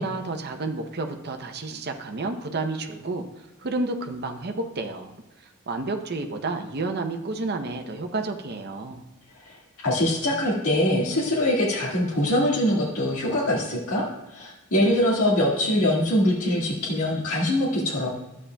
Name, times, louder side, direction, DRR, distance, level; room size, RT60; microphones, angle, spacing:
voice 1, 0.0-3.2 3.6-5.1 5.7-9.0, right 3 dB, 50° right, 5 dB, 0.7 m, -30 dB
voice 2, 9.8-18.1, left 1 dB, 80° left, -6 dB, 1.8 m, -23 dB
12.5 x 8.4 x 2.2 m, 1.0 s
head